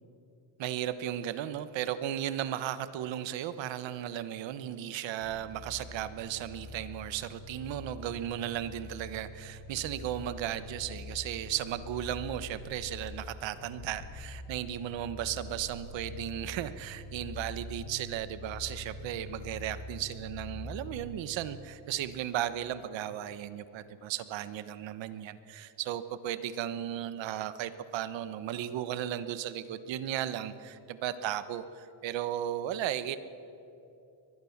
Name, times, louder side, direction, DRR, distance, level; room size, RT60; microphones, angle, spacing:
voice 1, 0.6-33.2, right 11 dB, 70° right, 13 dB, 1.3 m, -35 dB
sound 1, 5.2-21.4, left 2 dB, 45° left, 6.9 m, -45 dB
23.0 x 20.0 x 7.3 m, 2.8 s
cardioid pair, 155°, 47 cm